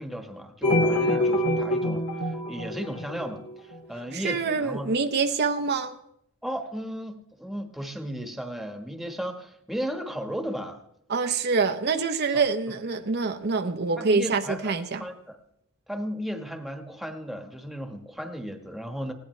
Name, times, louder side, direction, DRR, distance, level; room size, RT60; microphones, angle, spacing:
voice 1, 0.0-4.9 6.4-10.8 12.3-12.4 14.0-15.4 15.9-19.1, equal, ahead, 5 dB, 1.4 m, -35 dB
sound 1, 0.6-3.8, left 1 dB, 85° left, 3.2 m, -25 dB
voice 2, 4.1-5.9 11.1-15.0, right 4 dB, 50° right, 6 dB, 0.8 m, -25 dB
20.0 x 16.5 x 3.2 m, 0.77 s
head